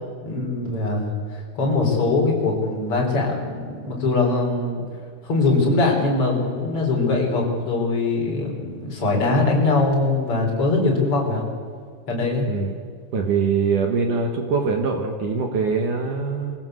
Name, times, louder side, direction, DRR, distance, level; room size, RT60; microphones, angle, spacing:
voice 1, 0.2-4.8 5.2-11.5 12.1-12.5, left 3 dB, 30° left, -1 dB, 4.7 m, -22 dB
voice 2, 13.1-16.5, right 5 dB, 60° right, 3 dB, 2.3 m, -23 dB
23.0 x 15.5 x 7.9 m, 2.1 s
omnidirectional pair, 5.4 m